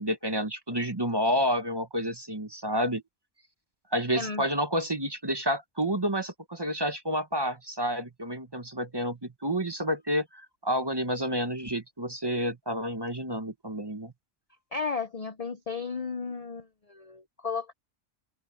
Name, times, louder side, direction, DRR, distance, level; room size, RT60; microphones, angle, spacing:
voice 1, 0.0-3.0 3.9-14.1, equal, 20° right, 1.0 m, -29 dB
voice 2, 14.7-17.7, left 5 dB, 40° left, 0.6 m, -34 dB
omnidirectional pair, 1.3 m